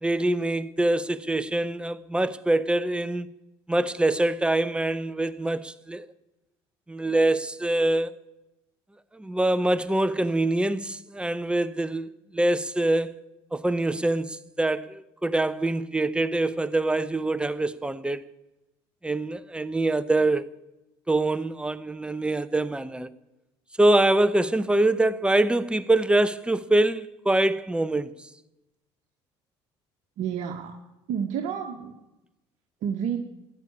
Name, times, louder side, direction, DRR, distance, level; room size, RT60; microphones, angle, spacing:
voice 1, 0.0-3.3 3.7-6.1 6.9-8.1 9.1-13.1 13.5-18.2 19.0-20.5 21.1-23.1 23.8-28.1, right 2 dB, 5° right, 0.8 m, -24 dB
voice 2, 30.2-30.8 31.1-32.0 32.8-33.2, right 8 dB, 60° right, 1.2 m, -30 dB
13.5 x 8.5 x 9.5 m
hypercardioid pair, 65°, 14 cm